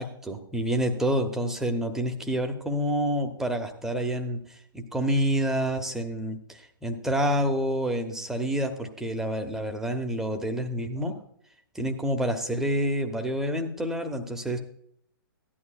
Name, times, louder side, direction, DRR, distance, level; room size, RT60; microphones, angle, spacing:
voice 1, 0.0-4.4 4.7-11.2 11.7-14.6, equal, 5° right, 4 dB, 1.0 m, -28 dB
15.5 x 11.0 x 2.3 m, 0.69 s
figure-of-eight pair, 120°, 12 cm